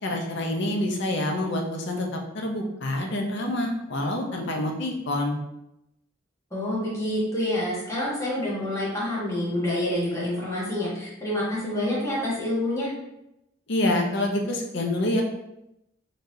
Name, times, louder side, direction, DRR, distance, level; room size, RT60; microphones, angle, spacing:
voice 1, 0.0-2.1 2.3-5.4 13.7-15.2, left 1 dB, 65° left, 2 dB, 0.7 m, -27 dB
voice 2, 6.5-12.9, left 1 dB, 15° left, -7 dB, 1.4 m, -27 dB
4.0 x 3.3 x 2.7 m, 0.87 s
head